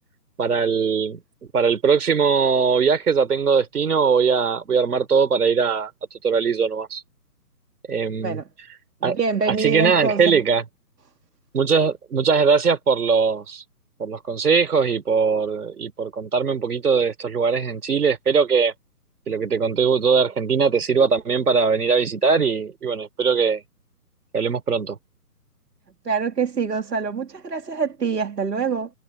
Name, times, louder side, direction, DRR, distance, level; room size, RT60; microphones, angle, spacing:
voice 1, 0.4-1.2 1.5-5.9 6.2-7.0 7.9-8.4 9.0-9.2 9.5-10.6 11.5-13.6 14.0-18.7 19.3-23.6 24.3-25.0, right 5 dB, 65° right, 3.7 m, -20 dB
voice 2, 9.0-10.4 26.0-28.9, right 5 dB, 85° right, 3.1 m, -25 dB
hypercardioid pair, 170°, 48 cm